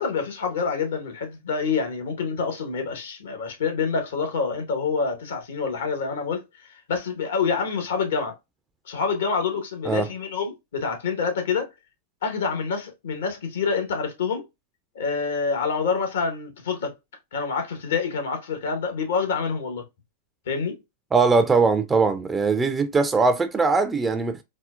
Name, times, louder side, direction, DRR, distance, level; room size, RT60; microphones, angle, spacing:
voice 1, 0.0-8.3 8.9-11.7 12.2-14.4 14.9-16.9 17.3-19.8 20.5-20.8, left 5 dB, 75° left, 1.1 m, -27 dB
voice 2, 21.1-24.4, right 4 dB, 15° right, 0.4 m, -21 dB
4.2 x 2.0 x 2.4 m
hypercardioid pair, 110°, 0 cm